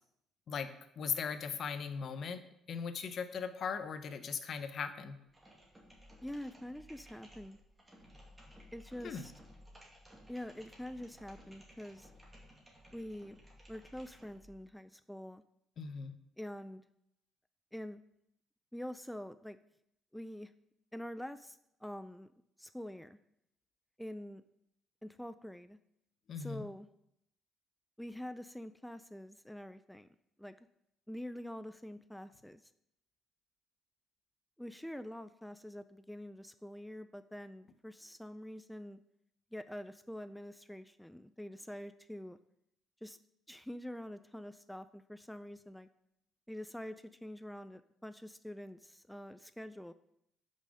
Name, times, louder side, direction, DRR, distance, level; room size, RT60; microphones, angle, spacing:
voice 1, 1.0-2.4 2.7-5.2 9.0-9.3 15.8-16.1 26.3-26.6, left 6 dB, 55° left, 10 dB, 0.7 m, -38 dB
sound 1, 5.3-14.6, equal, 20° right, 2.1 m, -58 dB
voice 2, 6.2-7.6 8.7-9.3 10.3-12.1 12.9-13.4 13.7-15.4 16.4-16.8 17.7-18.0 18.7-19.6 20.1-20.5 20.9-22.3 22.6-23.2 24.0-24.4 25.0-25.8 26.4-26.9 28.0-30.1 30.4-30.5 31.1-32.6 34.6-39.0 39.5-42.4 43.0-43.2 43.5-45.9 46.5-49.9, left 1 dB, 5° left, 12 dB, 0.4 m, -46 dB
5.4 x 5.0 x 6.2 m, 0.77 s
supercardioid pair, 70°, 0 cm